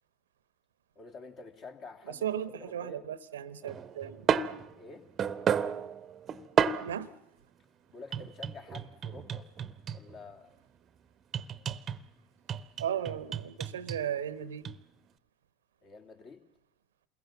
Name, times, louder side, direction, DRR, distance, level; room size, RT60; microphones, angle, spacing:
voice 1, 0.9-2.3 2.5-3.0 4.8-5.1 7.9-9.5 9.9-10.5 15.8-16.5, left 3 dB, 40° left, 5 dB, 2.7 m, -48 dB
voice 2, 2.1-4.3 6.8-7.1 12.8-14.7, right 9 dB, 70° right, 16 dB, 0.9 m, -36 dB
sound 1, 3.6-7.0 8.1-10.2 11.3-12.1 12.5-14.0 14.7-14.8, right 8 dB, 35° right, 0.9 m, -32 dB
28.5 x 21.5 x 7.3 m, 0.81 s
figure-of-eight pair, 75°, 0 cm